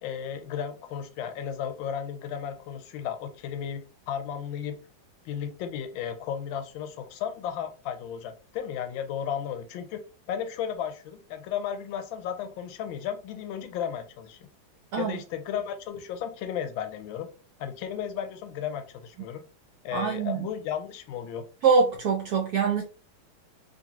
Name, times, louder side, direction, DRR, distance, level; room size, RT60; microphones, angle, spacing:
voice 1, 0.0-3.8 4.1-4.7 5.2-14.5 15.0-17.3 17.6-19.4 19.8-21.5, left 8 dB, 85° left, 7 dB, 1.4 m, -34 dB
voice 2, 19.9-20.5 21.6-22.8, right 5 dB, 70° right, 2 dB, 0.9 m, -24 dB
2.8 x 2.6 x 2.9 m, 0.35 s
omnidirectional pair, 2.1 m